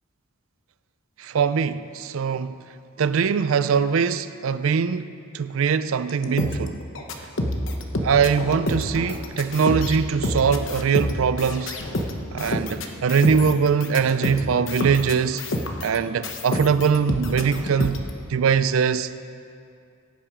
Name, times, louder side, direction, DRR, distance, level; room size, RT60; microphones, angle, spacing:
voice 1, 1.2-2.6 3.0-5.1 5.3-6.8 8.0-11.8 12.3-15.4 15.8-18.0 18.3-19.1, right 6 dB, 75° right, 0.4 m, -22 dB
sound 1, 6.1-16.0 16.2-18.1, left 1 dB, 60° left, 1.0 m, -28 dB
16.5 x 9.0 x 5.0 m
head